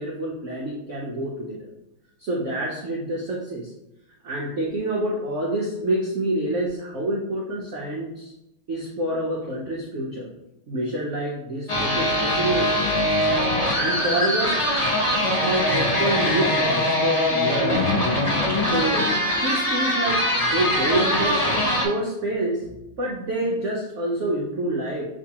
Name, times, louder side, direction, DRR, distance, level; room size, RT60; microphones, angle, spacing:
voice 1, 0.0-1.6 2.2-3.7 4.2-8.3 8.7-10.3 10.7-12.8 13.5-14.6 15.4-18.0 18.7-19.1 19.4-22.6 23.0-25.2, right 1 dB, 85° right, -3 dB, 0.6 m, -27 dB
sound 1, 11.7-21.9, left 1 dB, 40° left, 0.4 m, -22 dB
6.4 x 2.6 x 2.8 m, 0.91 s
omnidirectional pair, 2.2 m